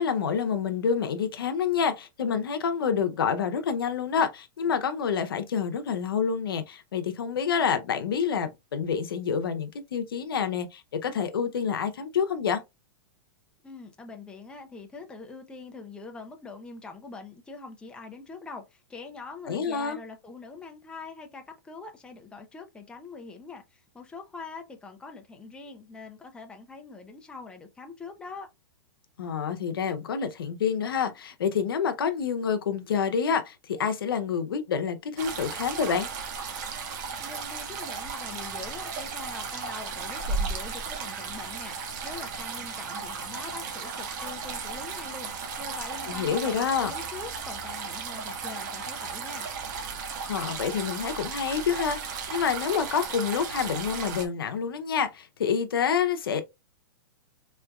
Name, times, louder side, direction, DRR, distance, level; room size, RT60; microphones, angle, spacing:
voice 1, 0.0-12.6 19.5-20.0 29.2-36.1 46.1-46.9 50.3-56.4, left 7 dB, 85° left, 0.7 m, -28 dB
voice 2, 13.6-28.5 37.2-41.8 42.0-49.5, left 4 dB, 10° left, 0.6 m, -43 dB
sound 1, 35.2-54.2, right 5 dB, 55° right, 1.1 m, -35 dB
3.7 x 3.3 x 2.3 m
hypercardioid pair, 135°, 12 cm